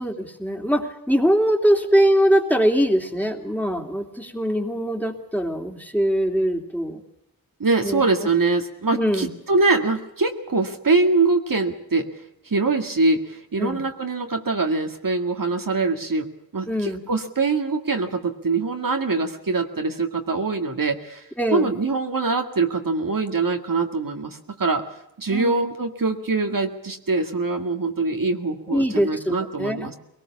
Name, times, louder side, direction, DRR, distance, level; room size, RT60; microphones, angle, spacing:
voice 1, 0.0-7.0 7.8-8.0 8.9-9.3 13.6-13.8 16.7-17.0 21.4-21.7 25.3-25.6 28.7-29.9, equal, 5° left, 3 dB, 3.0 m, -22 dB
voice 2, 7.6-12.1 12.5-16.3 16.5-21.2 21.5-24.9 25.2-29.9, right 3 dB, 60° right, 4 dB, 2.0 m, -23 dB
22.0 x 18.5 x 7.1 m, 0.83 s
cardioid pair, 40°, 37 cm